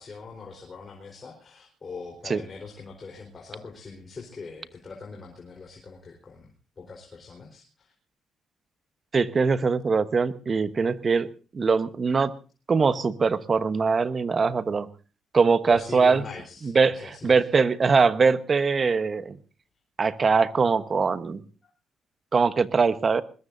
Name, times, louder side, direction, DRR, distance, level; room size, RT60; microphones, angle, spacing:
voice 1, 0.0-6.5 6.8-7.9 15.7-17.5, left 4 dB, 35° left, 0 dB, 4.2 m, -42 dB
voice 2, 9.1-11.3 11.5-12.3 12.7-14.9 15.3-16.2 16.6-19.4 20.0-21.4 22.3-23.2, right 5 dB, 40° right, 13 dB, 1.1 m, -22 dB
21.5 x 21.0 x 2.7 m, 0.36 s
cardioid pair, 90°, 0 cm